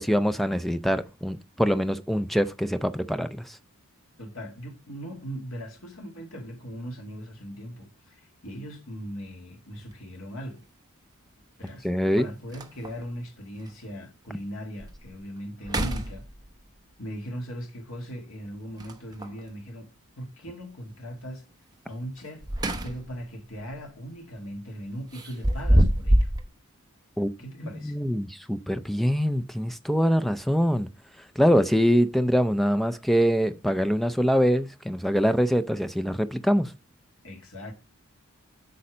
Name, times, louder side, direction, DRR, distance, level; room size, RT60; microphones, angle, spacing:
voice 1, 0.0-3.6 11.8-12.3 27.2-27.3 27.8-30.9 31.4-36.7, equal, ahead, 0.4 m, -24 dB
voice 2, 4.2-10.6 11.6-11.9 12.2-16.3 17.0-19.9 20.2-21.5 21.9-22.5 22.8-26.3 27.4-28.0 37.2-37.7, equal, 70° left, 2.3 m, -39 dB
sound 1, 9.8-9.9 11.7-11.8 12.2-12.3 12.5-13.1 13.7-13.8 14.3-14.4 14.8-15.2 15.6-16.7 18.8-19.4 22.2-23.2 23.6-23.8 25.1-26.4, equal, 20° right, 0.9 m, -25 dB
8.6 x 5.4 x 5.1 m
head